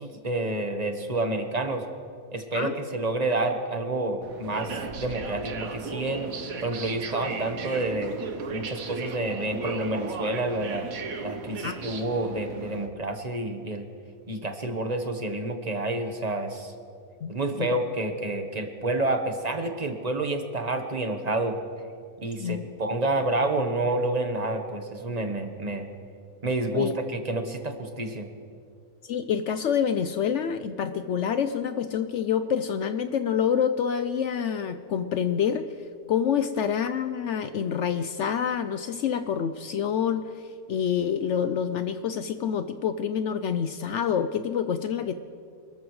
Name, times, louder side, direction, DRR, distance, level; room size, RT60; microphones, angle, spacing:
voice 1, 0.0-1.8 2.3-6.3 6.6-8.2 8.5-10.9 11.2-13.9 14.3-16.7 17.3-21.6 22.2-25.9 26.4-28.3, right 2 dB, 30° right, 5 dB, 1.1 m, -29 dB
sound 1, 4.2-12.9, right 4 dB, 65° right, 1.4 m, -36 dB
voice 2, 17.2-17.7 22.4-22.7 26.7-26.9 29.0-35.7 36.1-40.3 40.7-45.1, left 8 dB, 65° left, 10 dB, 0.7 m, -27 dB
27.0 x 13.5 x 3.1 m, 2.3 s
omnidirectional pair, 1.6 m